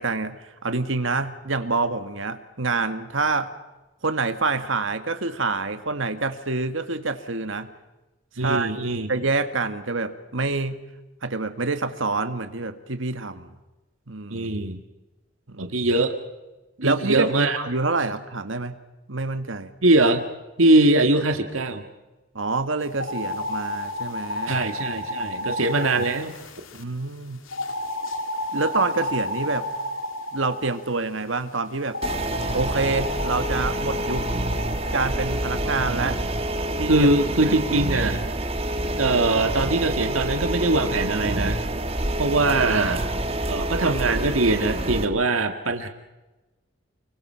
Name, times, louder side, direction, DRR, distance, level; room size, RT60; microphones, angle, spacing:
voice 1, 0.0-3.5 4.0-7.7 8.4-8.7 9.1-10.8 11.2-13.5 14.1-14.5 15.5-15.7 16.8-18.8 19.1-19.7 22.4-24.7 26.7-27.4 28.5-29.7 30.3-32.0 32.5-34.3 34.9-36.2 36.8-37.1 37.5-37.6, right 3 dB, 75° right, 9 dB, 1.8 m, -27 dB
voice 2, 8.4-9.1 14.3-14.8 15.6-16.1 16.8-17.6 19.8-20.2 20.6-21.8 24.5-26.3 36.9-38.2 39.0-41.6 42.2-43.0 43.5-45.9, right 2 dB, 90° right, 6 dB, 1.9 m, -21 dB
sound 1, 22.9-26.8 27.5-30.8 31.9-35.1, left 1 dB, 85° left, 2.6 m, -31 dB
sound 2, 32.0-45.1, right 1 dB, 30° right, 1.4 m, -27 dB
30.0 x 23.5 x 5.8 m, 1.1 s
head